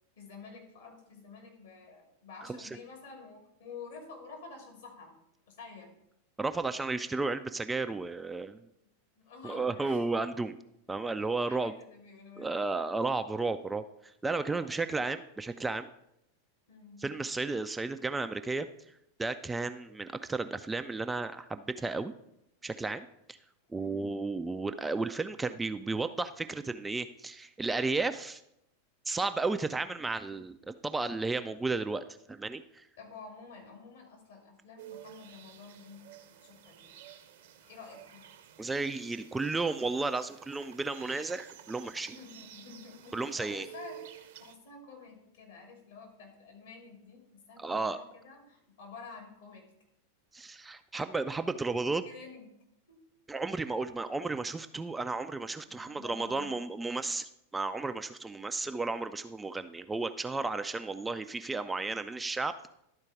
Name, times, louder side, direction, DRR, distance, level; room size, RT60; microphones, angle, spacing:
voice 1, 0.2-5.1 5.5-5.9 9.2-10.0 11.1-12.5 14.5-14.7 16.7-17.1 23.8-24.2 33.0-36.9 37.6-38.3 42.1-49.7 52.0-52.5 52.9-53.0 55.7-56.6, left 4 dB, 60° left, 0 dB, 2.7 m, -50 dB
voice 2, 6.4-8.6 9.4-10.6 10.9-11.7 12.4-15.9 17.0-18.7 19.2-22.1 22.6-23.4 23.7-28.4 29.1-32.9 38.6-42.2 43.1-43.7 47.6-48.0 50.3-52.0 53.3-62.5, right 3 dB, 10° right, 9 dB, 0.3 m, -33 dB
sound 1, 34.8-44.5, right 11 dB, 55° right, 0.7 m, -52 dB
12.0 x 4.4 x 4.8 m, 0.79 s
figure-of-eight pair, 90°, 0 cm